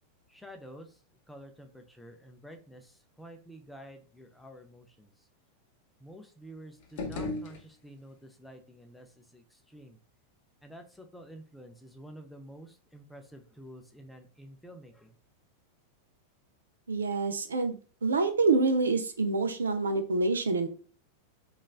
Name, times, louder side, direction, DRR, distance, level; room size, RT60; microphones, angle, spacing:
voice 1, 0.3-0.9 1.3-5.1 6.0-9.1 9.3-9.4 9.7-10.0 10.6-15.1, equal, 5° left, 4 dB, 0.4 m, -49 dB
sound 1, 6.8-8.2, left 2 dB, 50° left, 0.6 m, -38 dB
voice 2, 16.9-17.8 18.0-20.7, right 3 dB, 70° right, 7 dB, 0.4 m, -26 dB
3.0 x 2.3 x 2.4 m, 0.39 s
figure-of-eight pair, 90°, 0 cm